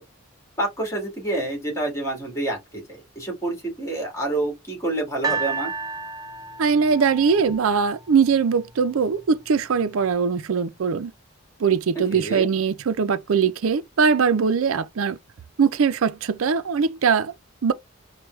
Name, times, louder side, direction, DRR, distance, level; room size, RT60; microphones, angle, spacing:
voice 1, 0.6-5.7 12.1-12.5, right 2 dB, 15° left, 1.8 m, -28 dB
sound 1, 5.2-8.4 9.2-9.3, right 5 dB, 20° right, 0.4 m, -31 dB
voice 2, 6.6-11.1 11.6-15.2 15.6-17.3 17.6-17.7, right 6 dB, 75° right, 0.4 m, -21 dB
4.6 x 2.2 x 3.1 m
head